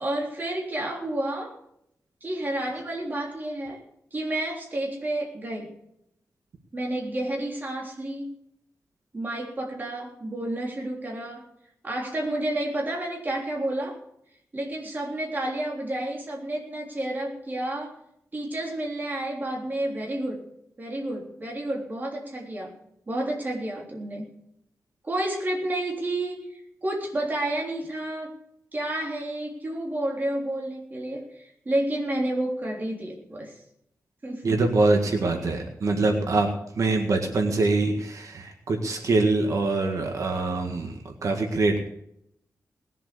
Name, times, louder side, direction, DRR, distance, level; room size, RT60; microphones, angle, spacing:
voice 1, 0.0-1.6 2.2-3.8 4.1-5.7 6.7-8.4 9.1-11.5 11.8-14.0 14.5-18.0 18.3-20.5 20.8-22.8 23.1-24.3 25.0-28.4 28.7-33.6 34.2-34.5, right 1 dB, 30° right, -1 dB, 3.5 m, -30 dB
voice 2, 34.4-36.5 36.8-41.8, right 3 dB, 70° right, 4 dB, 1.8 m, -24 dB
20.0 x 7.6 x 6.8 m, 0.74 s
wide cardioid pair, 120°, 6 cm